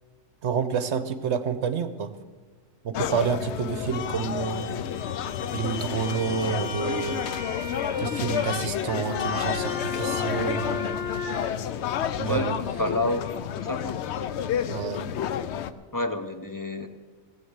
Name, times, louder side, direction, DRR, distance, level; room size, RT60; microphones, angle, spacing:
voice 1, 0.4-2.1 2.8-4.7 5.4-7.3 8.0-10.9 12.2-12.7 14.7-15.1, right 7 dB, 60° right, 11 dB, 1.0 m, -29 dB
sound 1, 2.9-15.7, left 9 dB, 65° left, 0.8 m, -30 dB
sound 2, 5.8-11.4, left 3 dB, 85° left, 4.8 m, -35 dB
voice 2, 12.2-13.3 13.6-14.0 15.9-16.9, left 2 dB, 30° left, 7 dB, 0.4 m, -29 dB
16.0 x 7.9 x 8.0 m, 1.5 s
omnidirectional pair, 1.4 m